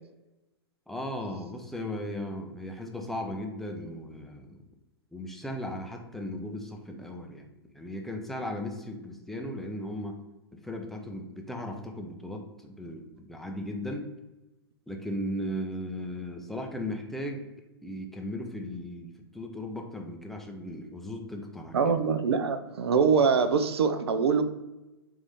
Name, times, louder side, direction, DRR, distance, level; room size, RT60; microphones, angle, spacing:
voice 1, 0.9-4.6 5.1-10.2 10.5-14.1 14.9-17.5 17.8-21.9, left 1 dB, ahead, 2 dB, 0.5 m, -37 dB
voice 2, 21.7-24.4, right 5 dB, 75° right, 9 dB, 0.4 m, -24 dB
3.6 x 2.6 x 3.3 m, 1.0 s
hypercardioid pair, 110°, 13 cm